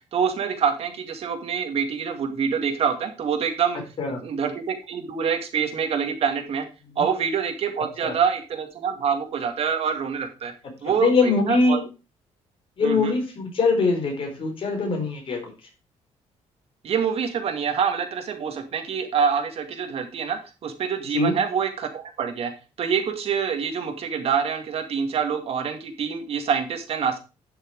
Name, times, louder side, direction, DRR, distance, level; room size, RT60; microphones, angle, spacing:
voice 1, 0.1-3.8 4.2-6.6 7.0-10.5 10.8-11.8 12.8-13.1 16.8-22.5 22.8-27.2, right 7 dB, 55° right, 5 dB, 2.3 m, -26 dB
voice 2, 11.0-11.8 12.8-15.5 21.1-21.4, left 3 dB, 45° left, 2 dB, 4.5 m, -22 dB
11.5 x 6.5 x 4.7 m, 0.31 s
cardioid pair, 135°, 12 cm